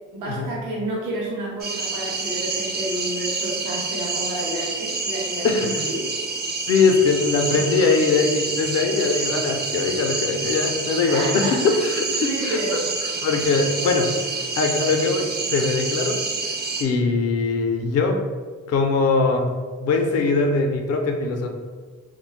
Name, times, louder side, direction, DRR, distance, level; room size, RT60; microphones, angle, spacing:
voice 1, 0.1-6.0 11.0-11.8 12.2-12.7, right 1 dB, 85° right, -4 dB, 0.8 m, -30 dB
sound 1, 1.6-16.8, right 3 dB, 35° right, 0.5 m, -28 dB
voice 2, 5.4-5.8 6.7-12.8 13.2-14.3 14.6-16.2 16.8-18.2 18.7-19.5 19.8-21.5, left 4 dB, 55° left, 4 dB, 0.5 m, -21 dB
2.7 x 2.1 x 3.0 m, 1.5 s
cardioid pair, 90°, 30 cm